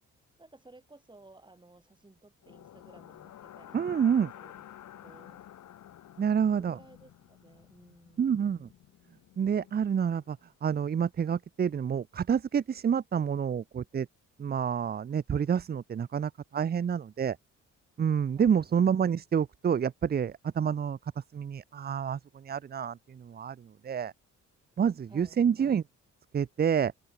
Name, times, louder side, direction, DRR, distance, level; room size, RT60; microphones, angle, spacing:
voice 1, 0.4-5.5 6.5-8.3 18.3-18.7 25.1-25.4, right 2 dB, 15° right, 6.1 m, -56 dB
sound 1, 2.4-10.4, left 11 dB, 70° left, 4.2 m, -51 dB
voice 2, 3.7-4.3 6.2-6.8 8.2-8.7 9.4-14.1 14.4-17.4 18.0-24.1 24.8-25.8 26.3-26.9, right 7 dB, 30° right, 0.6 m, -28 dB
open air
cardioid pair, 90°, 30 cm